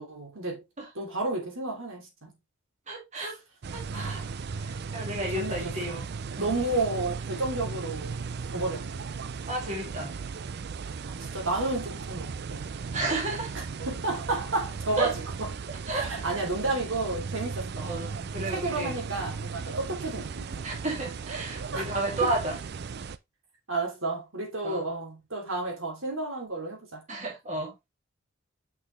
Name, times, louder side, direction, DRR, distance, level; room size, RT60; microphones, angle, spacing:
voice 1, 0.0-0.6 0.9-2.3 3.9-4.3 5.3-6.0 6.4-8.2 8.5-9.1 11.1-12.8 13.5-15.5 15.9-18.0 18.4-20.7 21.7-21.9 22.2-22.3 23.7-27.0, right 2 dB, 70° right, 2.9 m, -32 dB
voice 2, 2.9-3.3 3.7-4.2 4.9-6.1 6.4-6.5 9.5-10.1 12.9-13.5 15.0-15.1 15.9-16.1 17.8-18.9 20.6-22.5 24.6-24.8 27.1-27.7, right 2 dB, 35° right, 2.3 m, -32 dB
sound 1, 3.6-23.2, right 5 dB, 50° right, 0.4 m, -36 dB
6.2 x 6.0 x 3.2 m
head